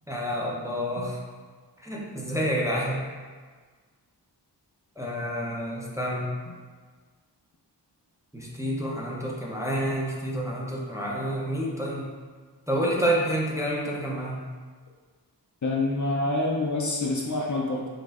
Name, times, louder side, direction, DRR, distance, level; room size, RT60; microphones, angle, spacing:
voice 1, 0.1-1.2 1.8-3.0 5.0-6.3 8.3-12.1 12.7-14.4, equal, 5° right, -4 dB, 0.6 m, -28 dB
voice 2, 15.6-17.9, left 2 dB, 45° left, -2 dB, 0.5 m, -27 dB
5.2 x 2.5 x 2.4 m, 1.5 s
wide cardioid pair, 60°, 42 cm